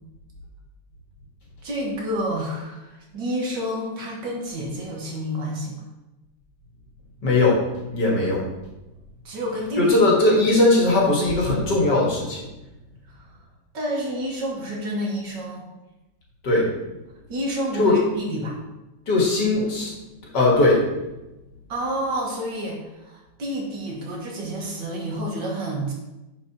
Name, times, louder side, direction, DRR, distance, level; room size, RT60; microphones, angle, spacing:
voice 1, 1.6-5.7 9.2-10.0 13.1-13.3 13.7-15.7 17.3-18.6 21.7-25.9, equal, 70° right, -2 dB, 2.2 m, -29 dB
voice 2, 7.2-7.6 7.9-8.4 9.8-12.4 16.4-16.7 17.8-18.0 19.1-19.9 20.3-20.8, left 2 dB, 65° left, -3 dB, 2.3 m, -19 dB
9.7 x 5.0 x 3.0 m, 1.0 s
omnidirectional pair, 2.0 m